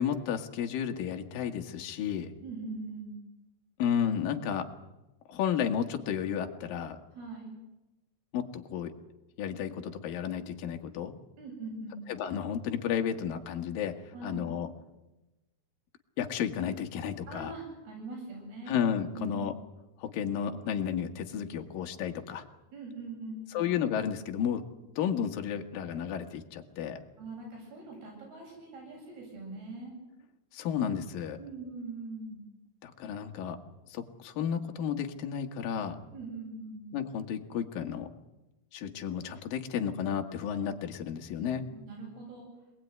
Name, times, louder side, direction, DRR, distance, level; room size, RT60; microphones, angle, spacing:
voice 1, 0.0-2.3 3.8-4.7 5.3-7.0 8.3-8.9 9.4-11.2 12.1-14.0 14.2-14.7 16.2-17.5 18.7-19.5 20.0-22.5 23.5-24.6 25.0-27.0 30.5-31.4 32.8-33.6 33.9-36.0 36.9-38.1 38.7-41.6, left 8 dB, 65° left, 4 dB, 3.2 m, -32 dB
voice 2, 2.4-3.2 7.1-7.6 11.4-12.0 14.1-14.5 17.3-18.8 19.1-19.4 22.7-23.7 27.2-29.9 31.4-32.4 36.1-36.9 41.7-42.5, right 3 dB, 75° right, 0 dB, 10.0 m, -42 dB
26.0 x 19.5 x 9.6 m, 1.0 s
omnidirectional pair, 4.5 m